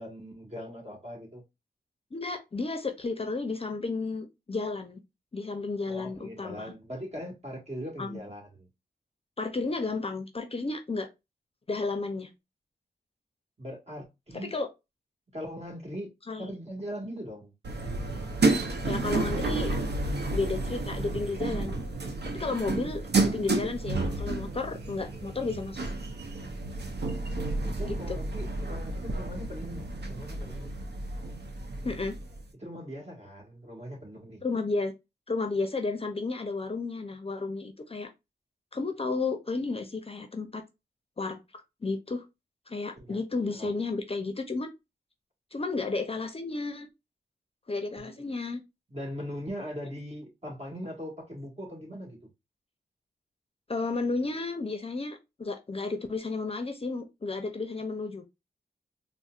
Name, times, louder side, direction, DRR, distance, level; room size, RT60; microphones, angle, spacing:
voice 1, 0.0-1.4 5.8-8.7 13.6-14.5 15.3-16.1 16.4-17.5 27.6-30.7 32.6-34.4 42.9-43.2 43.5-43.8 48.0-48.2 48.9-52.2, equal, 40° right, 1.6 m, -40 dB
voice 2, 2.1-5.0 5.3-6.7 8.0-8.2 9.4-11.1 11.7-12.3 14.4-14.7 16.3-16.5 18.8-19.7 20.3-21.8 22.3-25.8 27.9-28.2 31.8-32.2 34.4-34.9 35.3-38.1 38.7-40.6 41.2-41.4 41.8-42.2 42.7-44.7 45.5-46.9 47.7-48.6 53.7-58.2, left 3 dB, 35° left, 0.5 m, -32 dB
sound 1, 17.6-32.4, right 2 dB, 75° right, 0.7 m, -31 dB
4.0 x 2.1 x 2.4 m
cardioid pair, 65°, 17 cm